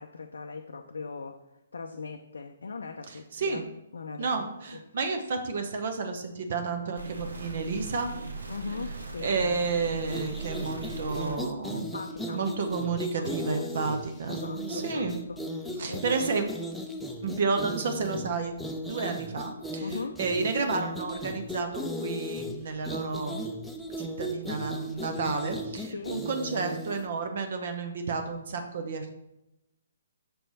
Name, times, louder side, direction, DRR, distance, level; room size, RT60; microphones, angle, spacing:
voice 1, 0.0-1.4 1.7-3.6 3.9-4.8 8.5-9.7 11.7-12.4 12.9-16.3 19.8-20.2 25.9-26.2, left 4 dB, 65° left, 4 dB, 0.5 m, -40 dB
voice 2, 3.1-3.6 4.2-8.1 9.2-11.9 12.3-15.2 15.8-16.4 17.2-18.5 18.9-23.4 24.0-29.1, right 4 dB, 50° right, 5 dB, 0.7 m, -31 dB
sound 1, 7.0-11.4, right 3 dB, 70° right, 1.0 m, -39 dB
sound 2, 10.1-27.1, equal, 5° left, 0.5 m, -36 dB
6.4 x 4.6 x 4.0 m, 0.88 s
figure-of-eight pair, 130°, 0 cm